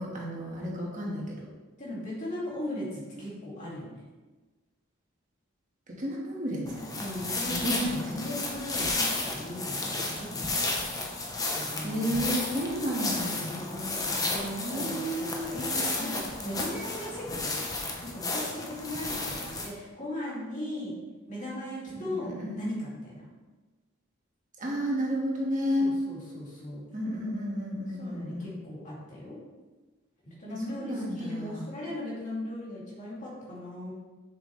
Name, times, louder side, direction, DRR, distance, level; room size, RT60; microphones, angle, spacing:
voice 1, 0.0-1.3 6.0-6.9 7.5-8.2 11.8-13.6 14.6-15.7 21.9-22.7 24.6-26.0 26.9-28.4 30.5-31.6, equal, 40° right, -3 dB, 1.7 m, -32 dB
voice 2, 1.8-4.1 7.0-10.6 11.6-12.6 13.3-20.9 21.3-23.3 25.8-26.9 27.9-29.4 30.2-33.9, left 1 dB, 35° left, -6 dB, 2.5 m, -38 dB
sound 1, 6.7-19.7, left 2 dB, 15° left, 0.8 m, -33 dB
7.1 x 6.3 x 3.3 m, 1.2 s
head